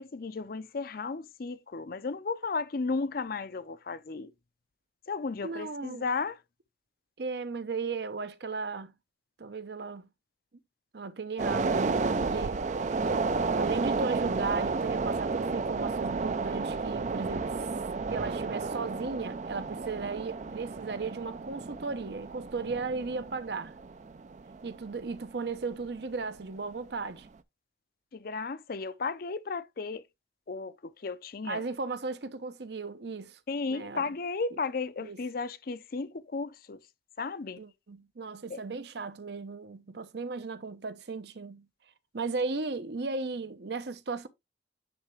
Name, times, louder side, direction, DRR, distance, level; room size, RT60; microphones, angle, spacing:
voice 1, 0.0-4.3 5.1-6.4 28.1-30.0 30.5-31.6 33.5-36.8 37.2-37.6 38.5-38.6, left 4 dB, 50° left, 0.5 m, -34 dB
voice 2, 5.4-6.0 7.2-8.9 9.4-10.1 10.9-12.9 13.5-17.7 18.1-23.7 24.6-27.3 31.4-33.4 33.7-34.1 35.0-35.2 37.6-41.7 42.1-44.3, right 4 dB, 65° right, 0.7 m, -36 dB
sound 1, 11.4-26.0 26.3-26.4, right 4 dB, 40° right, 0.4 m, -32 dB
9.9 x 3.3 x 3.1 m
head